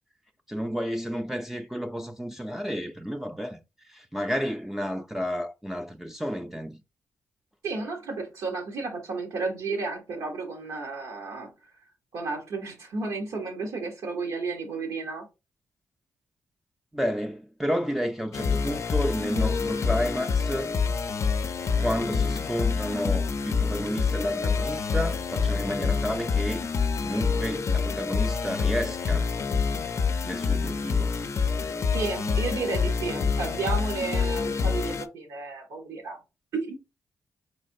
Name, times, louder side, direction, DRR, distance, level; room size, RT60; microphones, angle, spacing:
voice 1, 0.5-6.8 16.9-20.7 21.8-26.7 27.0-29.3 30.2-31.2, equal, 5° right, 0.4 m, -31 dB
voice 2, 7.6-11.5 12.1-15.3 31.9-36.2 36.5-36.8, right 3 dB, 90° right, 0.9 m, -32 dB
sound 1, 18.3-35.0, left 5 dB, 55° left, 0.4 m, -27 dB
4.2 x 3.2 x 2.6 m
supercardioid pair, 55°, 6 cm